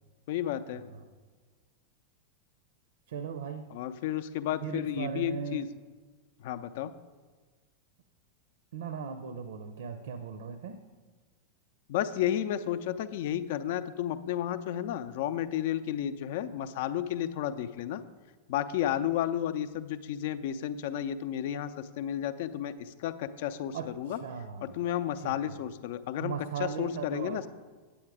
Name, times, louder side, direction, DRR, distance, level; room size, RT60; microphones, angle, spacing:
voice 1, 0.3-0.8 3.7-5.7 6.4-6.9 11.9-18.0 18.5-24.2 24.6-26.3 26.6-27.5, left 11 dB, 50° left, 12 dB, 0.5 m, -32 dB
voice 2, 3.1-3.7 4.6-5.7 8.7-10.8 23.7-24.8 25.2-25.5 26.2-27.4, right 6 dB, 60° right, 10 dB, 0.6 m, -38 dB
9.0 x 8.6 x 4.8 m, 1.4 s
figure-of-eight pair, 90°, 0 cm